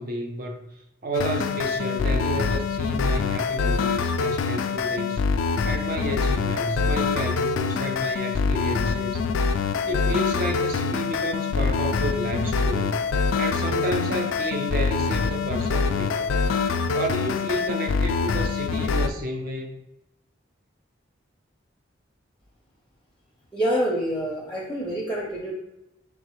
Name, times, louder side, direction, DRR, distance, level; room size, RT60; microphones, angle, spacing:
voice 1, 0.0-9.3 9.9-13.0 13.4-16.3 16.9-19.8, equal, 45° right, 3 dB, 0.4 m, -31 dB
sound 1, 1.1-19.1, left 5 dB, 80° left, 0.3 m, -25 dB
voice 2, 23.5-25.5, equal, 5° left, -3 dB, 0.5 m, -26 dB
4.1 x 3.1 x 3.0 m, 0.88 s
head